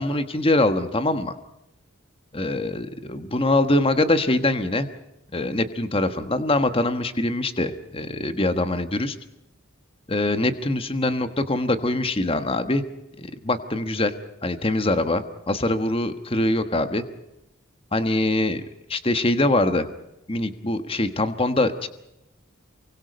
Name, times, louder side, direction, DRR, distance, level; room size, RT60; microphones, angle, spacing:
voice 1, 0.0-1.4 2.3-4.9 5.3-9.2 10.1-12.8 13.2-14.1 14.4-17.0 17.9-18.6 18.9-19.9 20.3-21.9, left 2 dB, 25° left, 9 dB, 1.4 m, -23 dB
28.0 x 24.0 x 5.3 m, 0.86 s
head